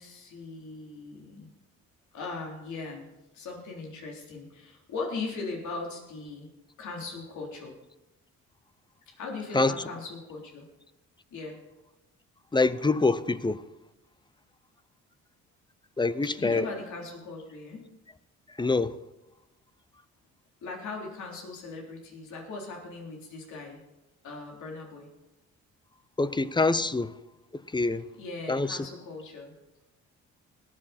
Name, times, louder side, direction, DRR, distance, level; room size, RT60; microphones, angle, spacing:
voice 1, 0.0-1.5 2.1-3.1 3.3-6.5 6.8-7.7 9.2-10.7 11.3-11.6 16.4-17.8 20.6-23.8 24.2-25.1 28.2-29.5, left 3 dB, 70° left, 3.5 m, -39 dB
voice 2, 12.5-13.6 16.0-16.7 18.6-18.9 26.2-27.1 27.7-28.0 28.5-28.8, left 3 dB, 15° left, 0.6 m, -25 dB
19.5 x 7.5 x 4.3 m
cardioid pair, 90°, 30 cm